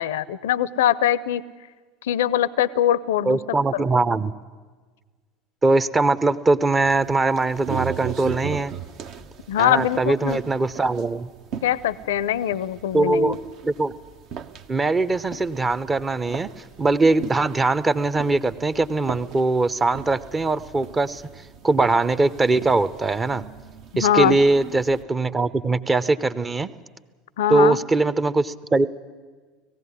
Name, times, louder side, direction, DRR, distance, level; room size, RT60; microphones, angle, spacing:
voice 1, 0.0-1.4 2.0-3.4 3.7-3.8 9.5-10.4 11.6-13.4 23.9-24.4 27.4-27.8, left 11 dB, 70° left, 20 dB, 0.5 m, -22 dB
voice 2, 3.2-4.3 5.6-8.7 9.6-11.3 12.9-13.4 13.6-13.9 14.7-16.5 16.8-21.2 21.6-23.4 24.0-26.7 27.5-28.9, right 3 dB, 20° right, 15 dB, 0.8 m, -21 dB
sound 1, 6.8-25.0, right 8 dB, 50° right, 0.9 m, -39 dB
19.0 x 15.5 x 9.8 m, 1.4 s
figure-of-eight pair, 70°, 0 cm